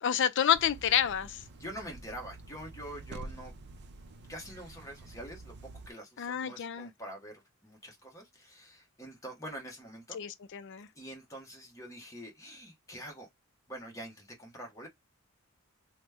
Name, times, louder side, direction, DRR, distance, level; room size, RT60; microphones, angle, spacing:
voice 1, 0.0-1.4 6.2-6.9 10.1-10.9, left 9 dB, 55° left, 0.4 m, -29 dB
sound 1, 0.5-5.9, right 2 dB, 50° right, 0.5 m, -48 dB
voice 2, 1.5-3.5 4.3-5.5 5.9-10.2 10.9-13.3 13.7-14.9, right 1 dB, 15° left, 1.0 m, -45 dB
3.0 x 2.1 x 3.4 m
head